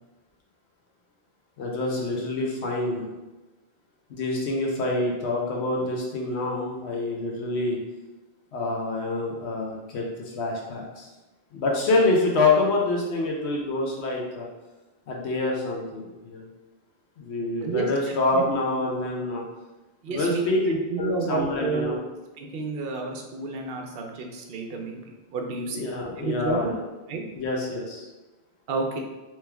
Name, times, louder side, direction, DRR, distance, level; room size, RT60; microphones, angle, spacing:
voice 1, 1.6-3.1 4.1-7.8 8.5-11.1 11.5-14.5 15.1-16.5 17.2-19.4 20.1-22.0 25.7-26.8 27.3-28.1, left 2 dB, 80° left, -1 dB, 0.9 m, -26 dB
voice 2, 17.6-18.4 20.0-22.0 22.4-25.0 25.3-25.9 26.2-26.7 27.1-27.2 28.7-29.0, right 3 dB, 65° right, 2 dB, 0.8 m, -30 dB
3.2 x 3.1 x 3.3 m, 1.1 s
omnidirectional pair, 1.1 m